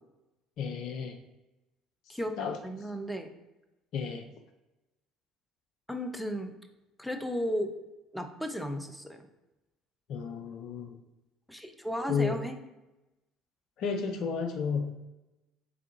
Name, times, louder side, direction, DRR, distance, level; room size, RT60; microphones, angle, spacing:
voice 1, 0.6-1.2 2.4-2.6 3.9-4.2 10.1-11.0 12.1-12.4 13.8-15.0, left 5 dB, 60° left, 5 dB, 0.4 m, -32 dB
voice 2, 2.1-3.3 5.9-6.5 7.0-7.7 8.1-9.2 11.5-12.6, equal, 5° left, 7 dB, 0.5 m, -34 dB
3.7 x 3.4 x 2.9 m, 1.0 s
hypercardioid pair, 60°, 0 cm